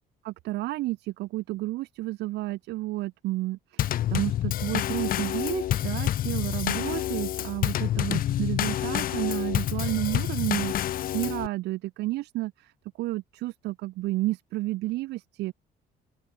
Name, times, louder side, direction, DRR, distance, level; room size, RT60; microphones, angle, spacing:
voice 1, 0.2-15.5, right 18 dB, 85° right, 4.0 m, -31 dB
Drum kit / Snare drum / Bass drum, 3.8-11.5, left 12 dB, 60° left, 1.0 m, -28 dB
open air
cardioid pair, 110°, 17 cm